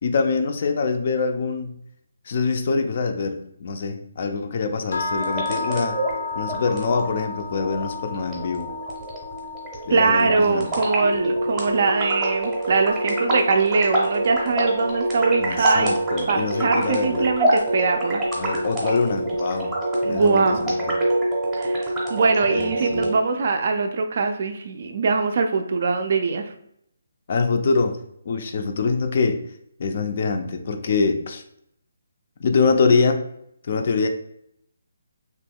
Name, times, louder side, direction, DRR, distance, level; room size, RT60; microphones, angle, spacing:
voice 1, 0.0-1.7 2.3-6.0 6.4-8.7 9.9-10.7 15.4-17.3 18.4-19.7 20.1-21.0 22.5-23.1 27.3-28.0 28.3-29.4 29.8-31.4 32.4-33.2 33.7-34.1, left 4 dB, 45° left, 6 dB, 0.4 m, -24 dB
sound 1, 4.9-15.0, left 3 dB, 80° left, 0.6 m, -34 dB
sound 2, 5.1-23.1, right 1 dB, 10° right, 0.7 m, -26 dB
voice 2, 9.9-15.9 16.3-18.2 20.0-20.7 21.6-26.5, right 4 dB, 45° right, 5 dB, 0.3 m, -22 dB
2.9 x 2.2 x 3.4 m, 0.73 s
hypercardioid pair, 165°, 0 cm